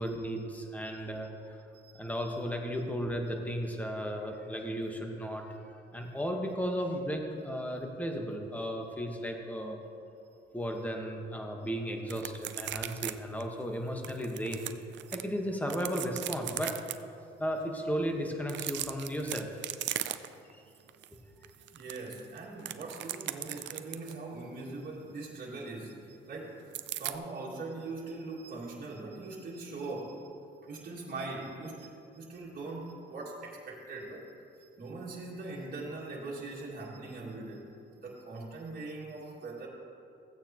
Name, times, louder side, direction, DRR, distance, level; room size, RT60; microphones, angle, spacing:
voice 1, 0.0-1.6 1.9-5.4 5.9-9.8 10.5-14.6 15.1-16.7 17.4-19.5 20.5-20.6 21.1-21.5, equal, 5° left, 2 dB, 1.2 m, -35 dB
sound 1, 12.1-13.1 13.4-13.5 14.0-15.2 15.6-16.9 18.4-20.5 20.9-21.1 21.4-24.2 26.7-27.2, right 12 dB, 65° right, 0.5 m, -37 dB
voice 2, 21.7-30.2 30.6-34.3 34.6-37.7 38.0-39.7, right 3 dB, 45° right, -5 dB, 2.1 m, -41 dB
15.5 x 8.6 x 2.9 m, 2.6 s
cardioid pair, 90°, 20 cm